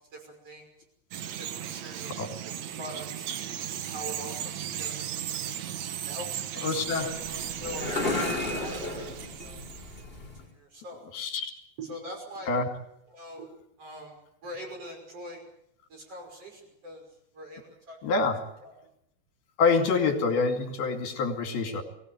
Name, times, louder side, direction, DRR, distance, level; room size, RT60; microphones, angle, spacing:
voice 1, 0.1-0.7 1.2-2.1 2.7-3.2 3.8-5.0 5.6-5.7 6.1-6.7 6.9-7.9 8.2-9.7 10.4-11.0 11.8-12.5 13.1-13.5 13.8-14.2 14.4-15.4 15.9-17.0 17.3-18.0 18.6-18.7, equal, 35° right, 2 dB, 6.6 m, -42 dB
Bird vocalization bird call bird song, 1.1-10.0, right 10 dB, 85° right, 1.6 m, -36 dB
voice 2, 6.6-7.1 11.1-11.5 12.5-12.7 18.0-18.5 19.6-21.8, left 4 dB, 65° left, 6 dB, 4.3 m, -26 dB
sound 1, 6.8-10.5, left 2 dB, 15° left, 4.0 m, -33 dB
22.5 x 16.0 x 9.3 m, 0.73 s
omnidirectional pair, 4.8 m